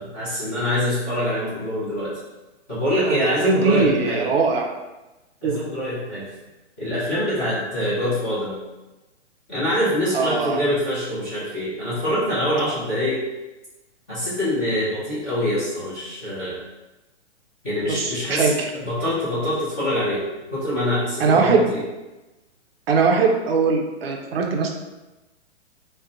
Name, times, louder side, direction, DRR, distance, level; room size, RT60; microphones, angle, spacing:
voice 1, 0.0-2.1 2.7-4.3 5.4-6.2 6.8-8.6 9.5-13.2 14.1-16.6 17.6-20.2 20.5-21.8, equal, 10° left, -13 dB, 0.4 m, -24 dB
voice 2, 3.4-4.7 5.4-5.6 10.1-10.6 17.9-18.5 21.2-21.6 22.9-24.7, right 4 dB, 55° right, 2 dB, 0.4 m, -20 dB
2.5 x 2.1 x 2.5 m, 1.1 s
hypercardioid pair, 145°, 37 cm